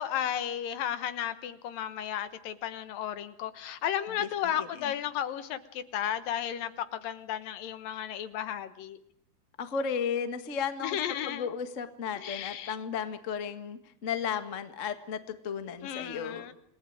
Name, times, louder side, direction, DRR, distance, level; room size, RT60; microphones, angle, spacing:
voice 1, 0.0-9.0 10.8-11.5 12.2-12.8 15.8-16.5, left 10 dB, 75° left, 12 dB, 2.9 m, -34 dB
voice 2, 9.6-11.0 11.2-16.4, left 7 dB, 35° left, 9 dB, 1.2 m, -34 dB
28.5 x 19.5 x 9.0 m, 0.72 s
omnidirectional pair, 4.2 m